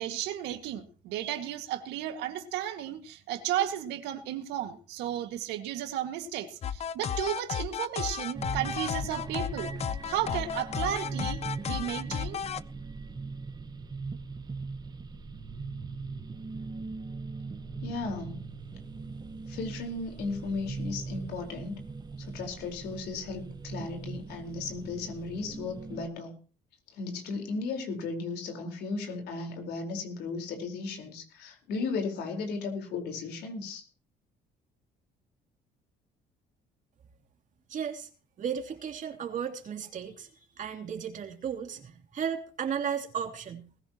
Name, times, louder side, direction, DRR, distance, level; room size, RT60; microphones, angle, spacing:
voice 1, 0.0-9.7 10.1-12.4, right 11 dB, 90° right, 7 dB, 2.0 m, -34 dB
sound 1, 6.6-12.6, left 8 dB, 40° left, 0.6 m, -33 dB
sound 2, 8.3-26.1, right 4 dB, 25° right, 1.2 m, -40 dB
voice 2, 17.8-18.5 19.5-21.8 22.2-26.3 26.9-33.9, left 4 dB, 80° left, 4 dB, 4.5 m, -35 dB
voice 3, 37.7-38.1 38.4-43.7, right 7 dB, 50° right, 5 dB, 3.1 m, -35 dB
20.5 x 15.0 x 3.0 m, 0.38 s
cardioid pair, 110°, 17 cm